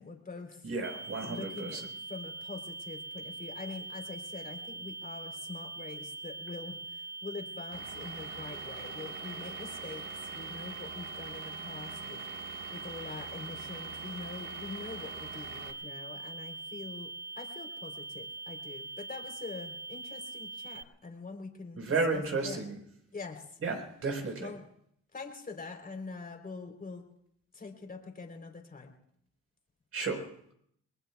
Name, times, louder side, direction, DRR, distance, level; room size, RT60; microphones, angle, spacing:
voice 1, 0.0-0.7 1.2-1.8 2.1-21.8 22.1-22.7 23.1-23.6 24.4-24.6 25.1-27.0 27.5-28.9, left 4 dB, 30° left, 3 dB, 3.7 m, -44 dB
voice 2, 0.6-1.8 21.8-22.8 23.6-24.5 29.9-30.3, right 3 dB, 50° right, 3 dB, 4.6 m, -33 dB
sound 1, 0.8-20.8, right 3 dB, 10° right, 0.9 m, -43 dB
Vehicle / Engine, 7.7-15.7, right 7 dB, 80° right, 1.7 m, -46 dB
28.5 x 21.0 x 2.4 m, 0.68 s
cardioid pair, 90°, 30 cm